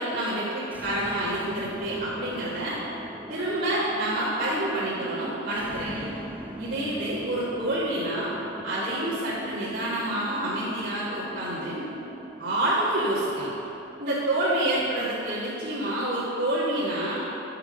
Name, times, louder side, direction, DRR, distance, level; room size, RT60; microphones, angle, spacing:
voice 1, 0.0-2.8 3.3-6.1 6.6-8.3 8.6-11.8 12.4-13.5 14.0-17.2, right 1 dB, 50° right, -13 dB, 1.9 m, -28 dB
sound 1, 0.6-16.7, right 1 dB, 10° right, 0.3 m, -41 dB
7.8 x 5.8 x 5.2 m, 3.0 s
head